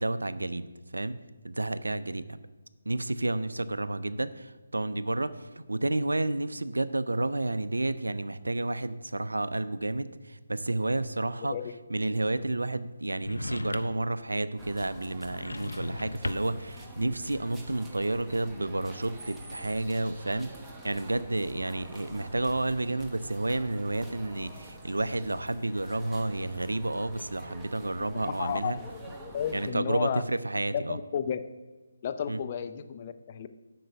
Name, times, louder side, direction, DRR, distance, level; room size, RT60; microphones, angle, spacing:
voice 1, 0.0-2.4 2.9-11.5 11.9-20.5 20.8-28.8 29.5-31.0 32.3-32.4, right 2 dB, 80° right, 14 dB, 0.5 m, -31 dB
sound 1, 13.2-14.1 15.2-16.7, left 2 dB, 80° left, 0.5 m, -37 dB
sound 2, 14.6-29.7, right 1 dB, 5° right, 0.9 m, -47 dB
sound 3, 14.9-20.9 21.3-22.0 22.6-24.1 24.5-25.2, right 2 dB, 40° right, 3.4 m, -56 dB
voice 2, 27.9-28.9 29.3-30.2 30.7-31.4 32.0-33.5, left 8 dB, 35° left, 10 dB, 0.5 m, -32 dB
7.8 x 6.3 x 6.6 m, 1.3 s
figure-of-eight pair, 150°, 0 cm